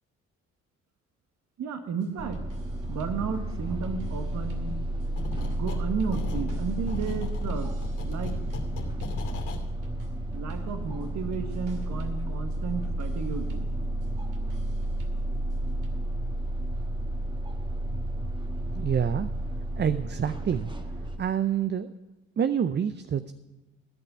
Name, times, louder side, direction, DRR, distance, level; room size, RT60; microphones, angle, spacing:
voice 1, 1.6-2.4 2.9-4.8 5.3-7.7 8.0-8.4 10.3-13.7, right 5 dB, 65° right, 7 dB, 1.6 m, -33 dB
sound 1, 1.9-15.9, right 2 dB, 90° right, 2.5 m, -48 dB
sound 2, 2.2-21.2, right 1 dB, 15° right, 1.4 m, -32 dB
sound 3, 5.1-5.8 6.1-9.6, left 4 dB, 85° left, 2.8 m, -37 dB
voice 2, 18.8-19.3 19.8-20.7 21.2-21.9 22.4-23.3, right 8 dB, 35° right, 12 dB, 0.6 m, -27 dB
16.0 x 5.9 x 8.0 m, 1.1 s
cardioid pair, 90°, 30 cm